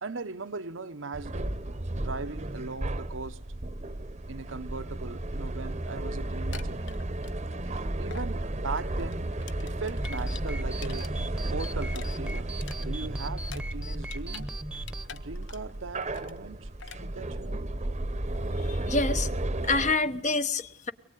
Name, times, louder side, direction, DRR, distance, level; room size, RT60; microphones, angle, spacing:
voice 1, 0.0-1.6 2.0-3.4 4.3-6.8 7.6-9.3 9.6-11.2 11.5-14.5 15.1-16.7 17.0-17.6 19.6-19.7, right 3 dB, 70° right, 1.0 m, -39 dB
sound 1, 1.1-19.9, right 1 dB, 35° right, 1.1 m, -33 dB
sound 2, 6.3-7.8 8.1-8.3 8.6-11.1 11.4-14.5 14.7-15.8 16.0-16.4 16.8-17.0, left 7 dB, 65° left, 1.4 m, -46 dB
sound 3, 9.9-15.1, right 1 dB, 5° right, 1.2 m, -39 dB
voice 2, 18.7-19.3 19.6-20.9, left 3 dB, 35° left, 1.2 m, -27 dB
24.0 x 22.5 x 9.2 m
head